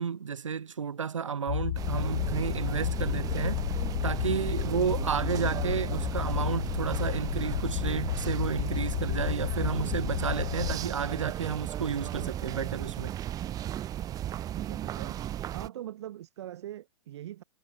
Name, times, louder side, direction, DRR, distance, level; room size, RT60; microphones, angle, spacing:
voice 1, 0.0-3.6 4.0-13.1, right 7 dB, 85° right, 0.9 m, -32 dB
sound 1, 1.5-10.8, left 14 dB, 55° left, 1.3 m, -32 dB
sound 2, 1.8-15.7, right 12 dB, 25° right, 0.7 m, -35 dB
voice 2, 14.5-15.2 15.5-17.4, right 12 dB, 60° right, 2.2 m, -42 dB
hypercardioid pair, 110°, 16 cm